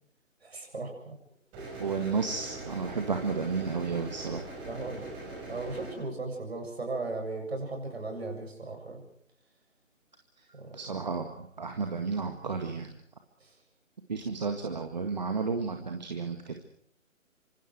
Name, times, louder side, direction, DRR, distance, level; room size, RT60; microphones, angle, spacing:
voice 1, 0.4-1.1 4.6-5.1 5.5-9.0 10.5-10.8 13.4-13.5, right 3 dB, 50° right, 3 dB, 7.6 m, -37 dB
sound 1, 1.5-5.9, right 2 dB, 10° right, 5.9 m, -42 dB
voice 2, 1.8-4.4 10.7-13.0 14.1-16.6, right 5 dB, 35° right, 5 dB, 1.9 m, -32 dB
27.5 x 26.0 x 4.8 m, 0.63 s
figure-of-eight pair, 155°, 40 cm